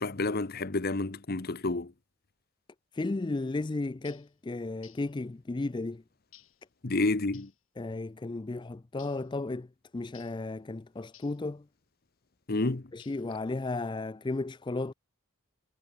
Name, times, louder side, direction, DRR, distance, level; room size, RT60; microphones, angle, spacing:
voice 1, 0.0-1.9 6.8-7.5 12.5-12.8, left 2 dB, 45° left, 0.9 m, -29 dB
voice 2, 2.9-6.0 7.8-9.7 9.9-11.6 12.9-14.9, left 2 dB, 20° left, 0.4 m, -34 dB
sound 1, 4.0-4.3 4.8-5.1 6.3-6.6 7.3-7.6 9.0-9.3 10.1-10.4 11.1-11.4 13.0-13.4, left 13 dB, 70° left, 4.7 m, -57 dB
head